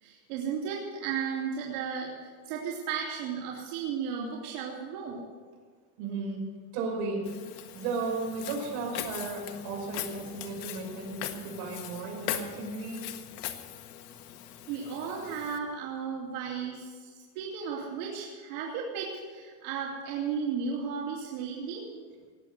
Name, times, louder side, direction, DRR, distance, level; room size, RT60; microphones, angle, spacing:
voice 1, 0.0-5.3 14.7-22.0, right 6 dB, 90° right, -4 dB, 3.3 m, -35 dB
voice 2, 6.0-6.4 6.7-7.2 7.7-13.2, right 3 dB, 60° right, 0 dB, 5.3 m, -35 dB
Walk footsteps, 7.3-15.6, left 11 dB, 85° left, 1.6 m, -40 dB
19.0 x 8.2 x 7.8 m, 1.5 s
cardioid pair, 170°, 45 cm